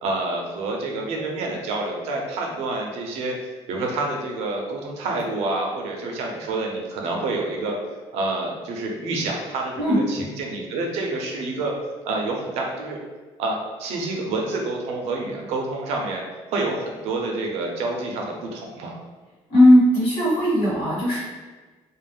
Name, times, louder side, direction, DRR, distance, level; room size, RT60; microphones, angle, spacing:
voice 1, 0.0-3.4 3.7-7.8 8.1-11.7 12.0-13.0 13.4-16.2 16.5-19.0, right 2 dB, 80° right, 0 dB, 0.6 m, -28 dB
voice 2, 19.5-21.2, left 1 dB, 55° left, -9 dB, 1.2 m, -17 dB
2.4 x 2.0 x 3.3 m, 1.3 s
cardioid pair, 175°, 11 cm